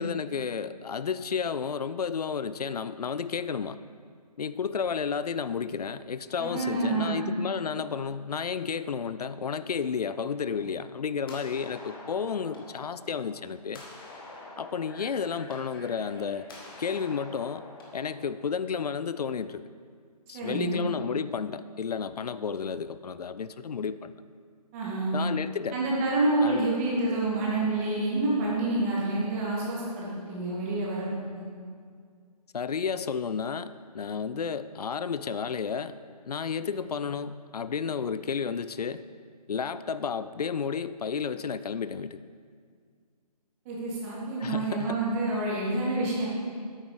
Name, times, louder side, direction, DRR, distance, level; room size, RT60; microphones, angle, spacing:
voice 1, 0.0-3.8 4.4-13.8 14.6-16.5 16.8-17.7 17.9-19.6 20.3-24.1 25.1-25.8 26.4-26.7 32.5-36.0 36.3-39.0 39.5-42.2 44.4-45.0, left 6 dB, 70° left, 14 dB, 0.5 m, -32 dB
voice 2, 6.4-7.2 20.3-20.8 24.7-25.2 25.7-31.1 31.3-31.5 43.7-46.3, right 2 dB, 20° right, -5 dB, 2.0 m, -28 dB
sound 1, 10.3-18.1, left 2 dB, 35° left, 1.6 m, -47 dB
9.0 x 8.9 x 4.7 m, 2.1 s
figure-of-eight pair, 155°, 21 cm